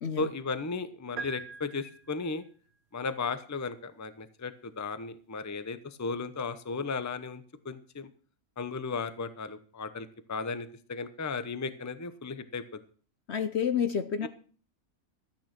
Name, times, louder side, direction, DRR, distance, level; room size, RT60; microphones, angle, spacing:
voice 1, 0.2-2.4 2.9-8.1 8.6-12.8 14.2-14.3, left 4 dB, 15° left, 12 dB, 0.7 m, -35 dB
sound 1, 1.2-2.5, right 5 dB, 80° right, 1.3 m, -42 dB
voice 2, 13.3-14.3, left 7 dB, 55° left, 11 dB, 0.9 m, -29 dB
13.5 x 9.3 x 6.0 m, 0.43 s
omnidirectional pair, 1.5 m